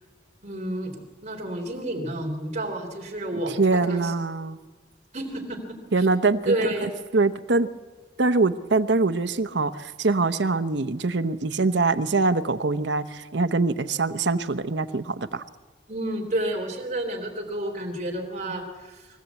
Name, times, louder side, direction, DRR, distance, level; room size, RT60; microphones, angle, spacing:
voice 1, 0.4-0.9 1.2-4.1 5.1-6.1 6.4-6.9 15.9-19.0, right 1 dB, 40° right, 1 dB, 3.2 m, -30 dB
voice 2, 3.5-4.6 5.9-6.6 6.8-7.7 8.2-15.4, right 3 dB, 75° right, 11 dB, 0.9 m, -23 dB
23.0 x 15.5 x 8.2 m, 1.3 s
head